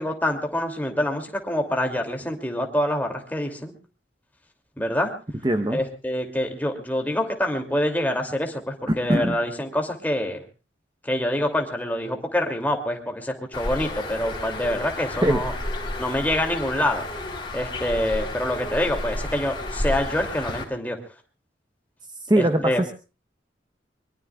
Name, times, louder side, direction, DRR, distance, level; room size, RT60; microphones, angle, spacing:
voice 1, 0.0-3.7 4.8-5.1 5.7-10.4 11.0-15.5 16.0-17.1 17.5-21.0 22.4-22.8, left 1 dB, 10° left, 3 dB, 2.6 m, -26 dB
voice 2, 5.4-5.8 8.9-9.4 15.2-15.4 22.3-22.9, right 1 dB, 25° right, 7 dB, 0.8 m, -21 dB
Bird, 13.5-20.6, left 1 dB, 25° left, 3.7 m, -31 dB
24.0 x 23.5 x 2.4 m, 0.34 s
head